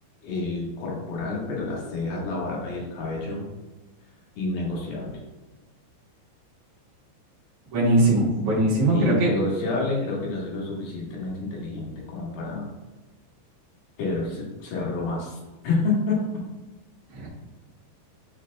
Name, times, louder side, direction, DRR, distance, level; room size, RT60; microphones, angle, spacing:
voice 1, 0.2-3.5 4.4-5.2 8.9-12.7 14.0-15.4 15.6-16.2, left 3 dB, 60° left, -4 dB, 2.9 m, -29 dB
voice 2, 7.7-9.3 17.1-17.3, right 1 dB, 65° right, -6 dB, 1.9 m, -21 dB
10.5 x 5.0 x 2.3 m, 1.1 s
omnidirectional pair, 5.3 m